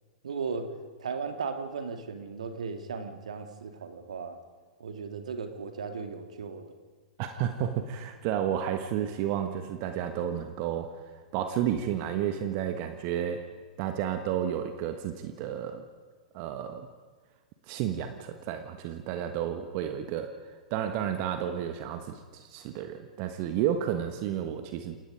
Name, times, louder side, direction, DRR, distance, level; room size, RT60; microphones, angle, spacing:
voice 1, 0.2-0.7 1.0-4.4 4.8-6.8, right 5 dB, 65° right, 6 dB, 2.3 m, -36 dB
voice 2, 7.2-13.4 13.8-15.8 16.3-16.9 17.7-25.0, right 10 dB, 40° right, 7 dB, 1.3 m, -31 dB
28.0 x 18.0 x 5.2 m, 1.4 s
figure-of-eight pair, 100°, 4 cm